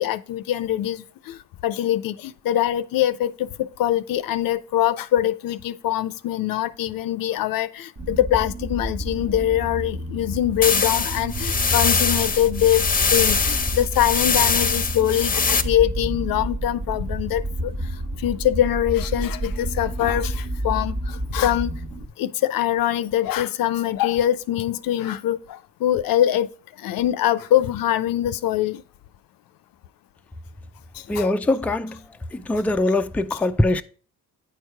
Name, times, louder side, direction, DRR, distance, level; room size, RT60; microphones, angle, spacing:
voice 1, 0.0-1.4 1.6-12.8 13.1-17.7 18.2-21.7 22.2-26.5 26.8-28.8 31.1-31.3 33.3-33.4, left 12 dB, 75° left, 0.6 m, -23 dB
sound 1, 8.0-22.1, right 1 dB, 40° right, 1.4 m, -30 dB
sound 2, 10.6-15.6, left 5 dB, 25° left, 0.7 m, -22 dB
voice 2, 31.1-32.0 32.3-33.8, left 2 dB, 5° left, 0.4 m, -22 dB
9.3 x 4.7 x 4.6 m
cardioid pair, 90°, 35 cm